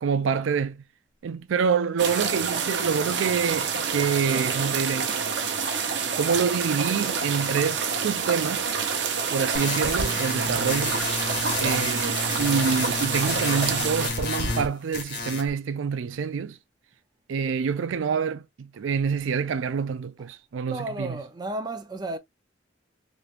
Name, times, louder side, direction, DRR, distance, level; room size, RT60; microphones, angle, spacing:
voice 1, 0.0-0.8 1.2-5.1 6.2-8.7 9.3-11.0 11.6-16.6 17.3-21.2, right 6 dB, 90° right, 0.4 m, -27 dB
sound 1, 2.0-14.1, right 6 dB, 70° right, 0.8 m, -27 dB
sound 2, 9.5-14.7 14.9-15.5, left 2 dB, 55° left, 1.4 m, -30 dB
voice 2, 20.6-22.2, right 2 dB, 20° right, 0.6 m, -33 dB
3.3 x 3.1 x 2.4 m
head